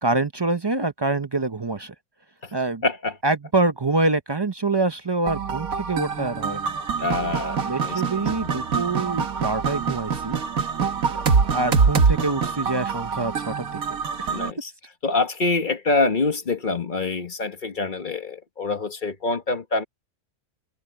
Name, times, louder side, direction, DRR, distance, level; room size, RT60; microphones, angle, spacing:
voice 1, 0.0-1.9 2.5-2.8 3.2-6.7 7.6-10.4 11.5-13.8 14.2-14.3, right 3 dB, 40° right, 0.3 m, -25 dB
voice 2, 2.8-3.2 7.0-8.5 14.3-14.7 15.0-19.8, left 3 dB, 35° left, 1.4 m, -26 dB
sound 1, 5.3-14.5, right 5 dB, 70° right, 1.8 m, -24 dB
omnidirectional pair, 1.5 m